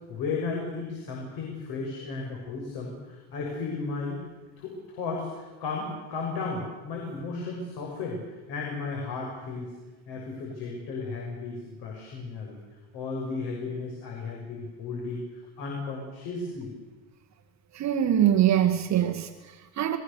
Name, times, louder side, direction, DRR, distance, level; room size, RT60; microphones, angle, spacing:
voice 1, 0.1-4.2 4.6-9.7 10.1-12.6 12.9-15.2 15.6-16.7, left 4 dB, 60° left, 6.7 m, -34 dB
voice 2, 17.7-20.0, right 10 dB, 40° right, 1.8 m, -23 dB
29.5 x 22.0 x 7.0 m
cardioid pair, 160°, 44 cm